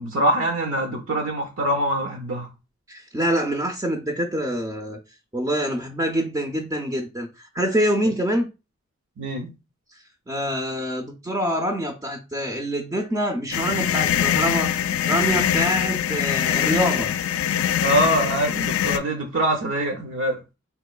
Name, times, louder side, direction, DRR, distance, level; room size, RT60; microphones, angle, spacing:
voice 1, 0.0-2.5 9.2-9.5 17.8-20.4, right 1 dB, 80° right, 0.5 m, -24 dB
voice 2, 2.9-5.0 5.3-8.5 9.9-14.7 15.1-17.1, equal, 15° right, 0.3 m, -25 dB
sound 1, 13.5-19.0, left 10 dB, 85° left, 0.3 m, -23 dB
3.7 x 2.9 x 2.2 m
head